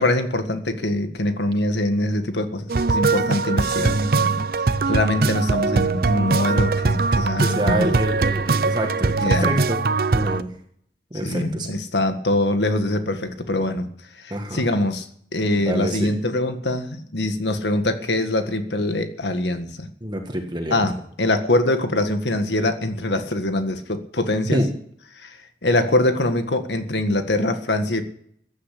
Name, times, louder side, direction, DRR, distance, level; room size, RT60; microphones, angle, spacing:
voice 1, 0.0-4.5 4.9-7.9 9.2-9.5 11.2-13.9 14.2-19.9 20.7-24.6 25.2-28.0, left 1 dB, 80° left, 8 dB, 1.8 m, -23 dB
sound 1, 2.7-10.4, right 4 dB, 55° right, 0.6 m, -21 dB
voice 2, 7.4-9.8 10.1-10.5 11.1-11.7 14.3-14.7 15.5-16.1 20.0-20.9 24.5-24.7, equal, 25° right, 3 dB, 1.8 m, -26 dB
15.0 x 9.7 x 8.5 m, 0.65 s
head